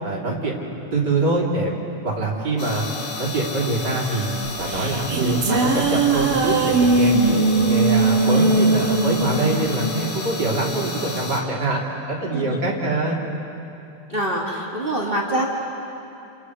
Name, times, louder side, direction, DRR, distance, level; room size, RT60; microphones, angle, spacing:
voice 1, 0.0-1.7 2.0-2.9 3.2-4.3 4.6-11.8 12.1-13.2, right 2 dB, 50° right, -3 dB, 3.9 m, -24 dB
sound 1, 2.6-11.4, left 3 dB, 60° left, 3.3 m, -32 dB
sound 2, 4.5-11.0, right 3 dB, 75° right, 2.5 m, -20 dB
voice 2, 14.1-15.5, right 1 dB, 25° right, -3 dB, 2.2 m, -25 dB
30.0 x 28.0 x 4.9 m, 2.9 s
omnidirectional pair, 2.4 m